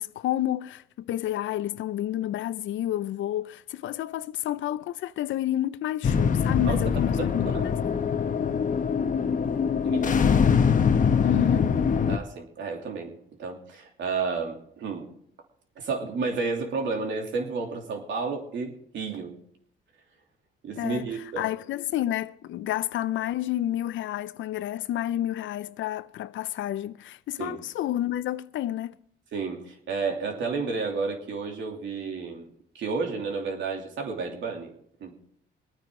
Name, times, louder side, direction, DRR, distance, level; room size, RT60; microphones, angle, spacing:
voice 1, 0.0-7.8 11.2-11.8 20.8-21.1 21.4-29.0, left 12 dB, 75° left, 0.6 m, -30 dB
sound 1, 6.0-12.2, left 6 dB, 40° left, 1.0 m, -23 dB
voice 2, 6.6-7.0 9.8-10.2 12.1-15.1 15.8-19.4 20.6-21.5 27.4-27.6 29.3-32.5 32.7-34.7 35.0-35.1, right 4 dB, 70° right, 2.9 m, -31 dB
23.0 x 9.4 x 3.8 m
cardioid pair, 90°, 20 cm